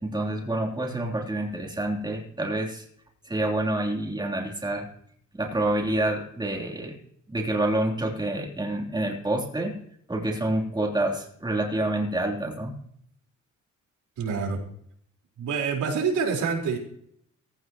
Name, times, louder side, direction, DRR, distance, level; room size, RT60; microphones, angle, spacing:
voice 1, 0.0-2.8 3.3-4.9 5.4-7.0 7.3-9.7 10.1-12.8, right 1 dB, 15° right, 0 dB, 3.5 m, -27 dB
voice 2, 14.2-14.6 15.4-16.8, right 5 dB, 75° right, 0 dB, 4.5 m, -26 dB
16.0 x 15.5 x 3.1 m, 0.66 s
cardioid pair, 90°, 30 cm